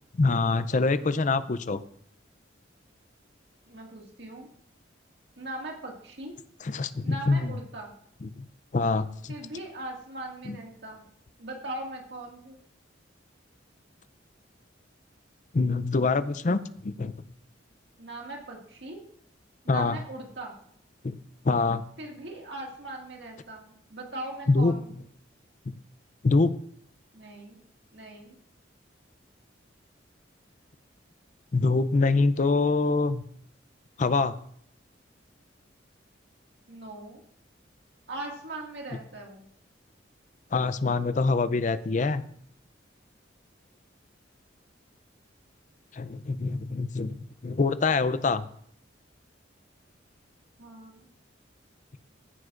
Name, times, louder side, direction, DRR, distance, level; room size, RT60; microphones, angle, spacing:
voice 1, 0.2-1.8 6.6-7.5 8.2-8.5 8.7-9.4 10.5-10.6 15.5-17.1 19.7-20.0 21.0-21.2 21.4-21.8 24.5-24.7 25.7-25.8 26.2-26.5 31.5-33.2 34.0-34.3 40.5-42.2 45.9-47.2 47.4-48.5, left 3 dB, 40° left, 14 dB, 0.5 m, -25 dB
voice 2, 3.7-4.5 5.4-6.4 7.0-8.0 9.3-11.0 11.4-12.6 18.0-19.0 19.6-20.6 22.0-24.9 27.1-27.6 27.9-28.4 36.7-37.2 38.1-39.4 50.6-51.1, right 2 dB, 65° right, 0 dB, 2.0 m, -40 dB
16.0 x 9.5 x 2.5 m, 0.65 s
head